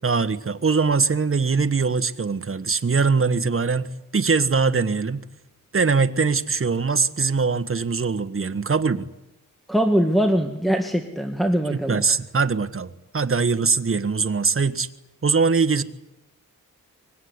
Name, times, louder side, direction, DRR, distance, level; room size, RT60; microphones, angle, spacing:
voice 1, 0.0-5.2 5.7-9.1 11.7-14.9 15.2-15.8, right 4 dB, 40° right, 10 dB, 1.5 m, -22 dB
voice 2, 9.7-12.0, equal, ahead, 5 dB, 1.9 m, -22 dB
24.0 x 21.5 x 9.8 m, 0.95 s
wide cardioid pair, 80°, 33 cm